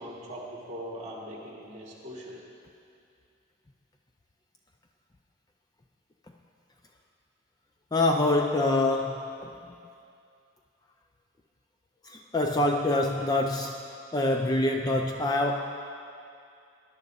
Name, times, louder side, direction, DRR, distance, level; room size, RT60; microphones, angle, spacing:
voice 1, 0.0-2.4, equal, 30° right, -3 dB, 1.7 m, -41 dB
voice 2, 7.9-9.5 12.0-13.8 14.1-15.9, left 2 dB, 20° left, 3 dB, 0.3 m, -26 dB
17.5 x 11.0 x 2.6 m, 2.5 s
head